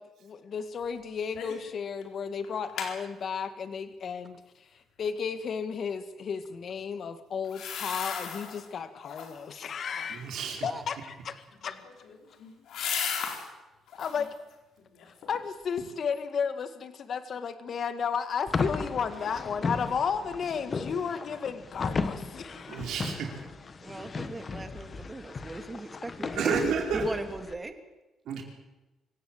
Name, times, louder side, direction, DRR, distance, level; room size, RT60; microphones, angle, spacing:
voice 1, 0.0-4.4 5.0-10.3 10.6-11.8 14.0-14.3 15.1-22.8, left 6 dB, 55° left, 10 dB, 1.8 m, -33 dB
sound 1, 1.4-1.7 2.0-2.1 2.4-2.9 7.4-8.7 9.0-9.6 11.5-13.5 13.9-14.3 14.8-15.4 15.8-15.9, left 7 dB, 75° left, 4.1 m, -36 dB
voice 2, 10.1-10.7 22.7-23.3 26.3-27.1 28.3-28.4, right 6 dB, 80° right, 2 dB, 5.0 m, -30 dB
sound 2, 18.5-27.5, left 4 dB, 40° left, 1.8 m, -36 dB
voice 3, 23.8-26.6 26.9-27.7, right 2 dB, 20° right, 7 dB, 2.7 m, -38 dB
25.5 x 16.0 x 7.9 m, 1.1 s
cardioid pair, 90°, 0 cm